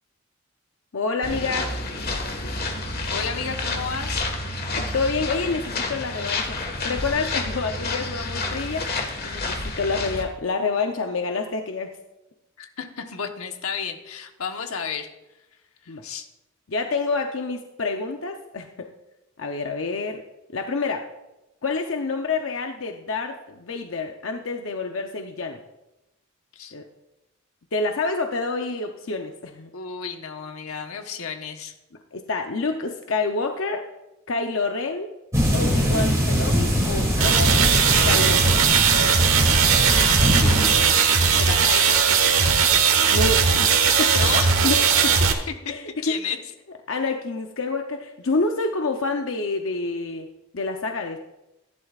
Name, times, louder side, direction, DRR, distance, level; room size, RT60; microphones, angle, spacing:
voice 1, 0.9-2.0 4.7-6.6 6.8-8.9 9.2-12.0 15.9-16.0 16.7-18.9 19.4-20.2 20.5-21.0 21.6-25.6 26.7-26.9 27.7-29.7 32.1-33.9 34.3-35.1 35.5-38.6 43.1-43.7 44.0-44.2 44.6-44.8 45.7-46.1 46.9-50.3 50.5-51.2, left 3 dB, 65° left, 4 dB, 0.7 m, -28 dB
sound 1, 1.2-10.2, left 2 dB, 45° left, 1.5 m, -29 dB
voice 2, 2.8-4.2 12.6-15.1 16.0-16.3 26.5-26.7 29.7-31.7 39.0-39.2 40.2-40.9 41.3-42.2 44.1-44.5 45.6-45.7 46.0-46.4, left 6 dB, 90° left, 4 dB, 1.2 m, -32 dB
sound 2, 35.3-40.9, equal, 15° right, 2.6 m, -22 dB
sound 3, 37.2-45.3, right 6 dB, 75° right, 1.2 m, -18 dB
15.0 x 11.0 x 2.4 m, 0.95 s
head